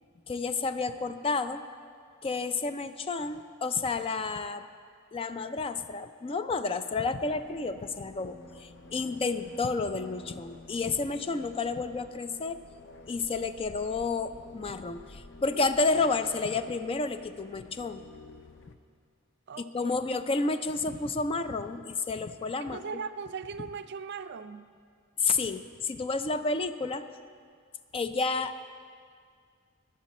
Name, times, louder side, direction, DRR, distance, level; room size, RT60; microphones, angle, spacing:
voice 1, 0.3-1.6 2.2-4.7 5.1-12.6 13.1-18.0 19.6-22.8 25.2-27.1 27.9-28.6, left 3 dB, 25° left, 11 dB, 0.4 m, -30 dB
sound 1, 7.2-18.7, left 3 dB, 65° left, 0.7 m, -50 dB
voice 2, 19.5-20.0 22.6-24.8, right 5 dB, 55° right, 10 dB, 0.4 m, -39 dB
21.0 x 7.4 x 4.2 m, 2.1 s
head